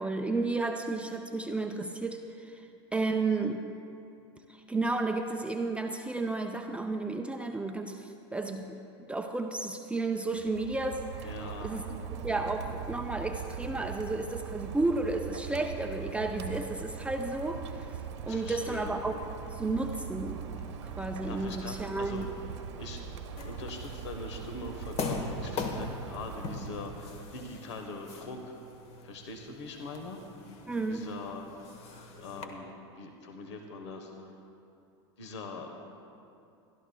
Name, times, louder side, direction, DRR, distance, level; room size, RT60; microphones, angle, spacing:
voice 1, 0.0-2.7 2.9-3.7 4.5-11.3 11.6-11.8 12.1-18.0 18.2-19.1 19.5-20.5 20.8-22.3 30.7-31.1, right 3 dB, 10° right, 3 dB, 0.5 m, -32 dB
Rain, 10.3-27.6, right 7 dB, 80° right, 1.1 m, -41 dB
voice 2, 11.2-11.8 18.2-18.9 21.3-22.3 22.8-23.2 23.4-28.6 29.0-30.2 30.9-31.5 32.2-34.4 35.2-35.7, left 3 dB, 80° left, 4 dB, 1.2 m, -42 dB
sound 1, 23.4-32.4, left 4 dB, 45° left, 1.2 m, -41 dB
23.0 x 12.0 x 2.3 m, 2.7 s
hypercardioid pair, 105°, 15 cm